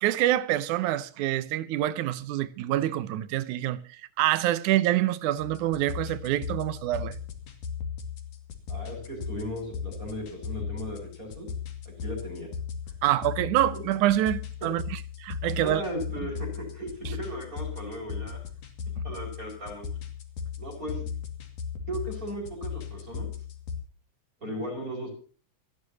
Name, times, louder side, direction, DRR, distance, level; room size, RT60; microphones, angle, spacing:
voice 1, 0.0-7.2 13.0-15.8, right 13 dB, 75° right, 2.3 m, -26 dB
sound 1, 5.4-23.8, left 6 dB, 75° left, 3.8 m, -37 dB
voice 2, 8.7-11.5 12.0-12.5 13.7-13.8 15.5-18.4 19.0-19.8 20.6-21.0 21.9-23.3 24.4-25.1, equal, 25° right, 6.0 m, -36 dB
27.0 x 11.5 x 2.9 m
omnidirectional pair, 3.6 m